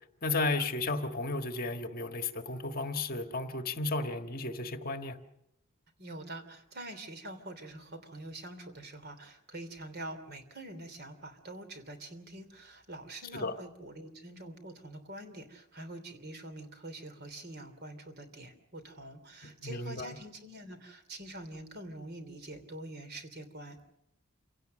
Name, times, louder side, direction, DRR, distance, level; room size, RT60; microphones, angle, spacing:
voice 1, 0.2-5.2 13.3-13.5 19.4-20.1, left 3 dB, 45° left, 7 dB, 1.5 m, -33 dB
voice 2, 6.0-23.8, right 1 dB, 50° right, 9 dB, 3.1 m, -45 dB
28.0 x 17.5 x 6.6 m, 0.81 s
head